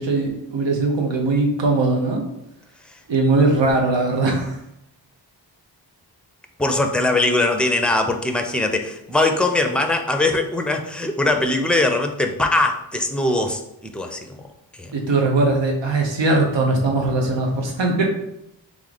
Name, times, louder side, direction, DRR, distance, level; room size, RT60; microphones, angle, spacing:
voice 1, 0.0-2.2 3.1-4.6 14.9-18.1, right 2 dB, 85° right, 1 dB, 1.0 m, -20 dB
voice 2, 6.6-14.5 14.8-14.9, left 2 dB, ahead, 4 dB, 0.4 m, -21 dB
3.7 x 3.2 x 3.9 m, 0.83 s
wide cardioid pair, 100°, 43 cm